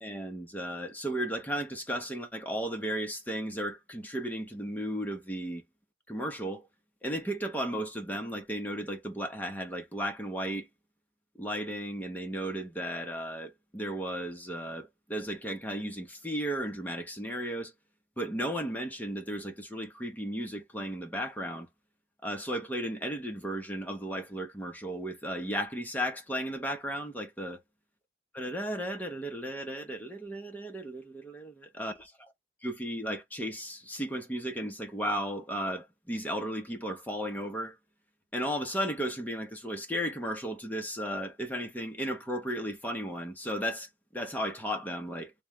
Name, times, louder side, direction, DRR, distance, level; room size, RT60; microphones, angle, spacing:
voice 1, 0.0-5.6 6.1-6.6 7.0-10.7 11.4-17.7 18.2-21.7 22.2-27.6 28.3-32.3 32.6-37.8 38.3-45.3, equal, 10° left, 1.0 m, -35 dB
3.5 x 3.2 x 3.4 m
head